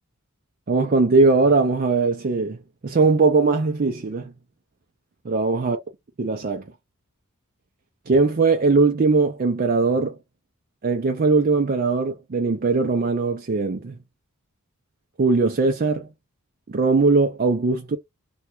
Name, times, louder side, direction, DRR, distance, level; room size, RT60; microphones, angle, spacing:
voice 1, 0.7-4.3 5.2-5.8 6.2-6.7 8.1-10.2 10.8-13.9 15.2-16.1 16.7-18.0, right 3 dB, 40° right, 0.4 m, -20 dB
3.4 x 2.2 x 2.9 m
head